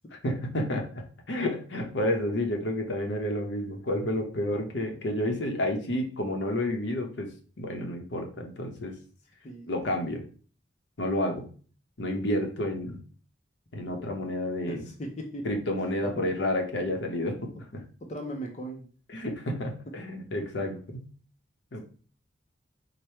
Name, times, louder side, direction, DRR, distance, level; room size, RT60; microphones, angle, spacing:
voice 1, 0.1-7.3 7.6-8.9 9.7-10.2 11.0-11.5 12.0-13.0 13.7-14.9 15.4-17.8 19.1-21.0 21.7-21.8, left 1 dB, 70° left, 3 dB, 0.8 m, -30 dB
voice 2, 14.7-15.5 16.0-16.1 18.1-18.9, right 1 dB, 35° left, 1 dB, 0.6 m, -37 dB
4.8 x 2.2 x 4.3 m, 0.42 s
head